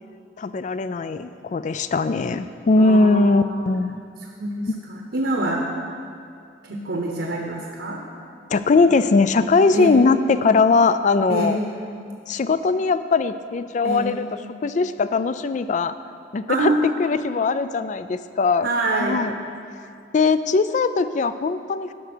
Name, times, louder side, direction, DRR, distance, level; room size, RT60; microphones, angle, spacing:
voice 1, 0.4-4.0 4.7-4.8 8.5-11.6 12.3-14.3 14.6-15.9 16.3-16.7 17.0-18.7 19.0-19.4 20.1-21.9, left 4 dB, 40° left, 12 dB, 0.3 m, -20 dB
voice 2, 2.8-3.6 4.4-5.6 6.6-8.0 9.7-10.0 11.3-11.7 13.8-14.1 16.5-16.8 18.6-19.3, right 2 dB, 70° right, 0 dB, 1.0 m, -26 dB
11.5 x 5.6 x 6.1 m, 2.4 s
head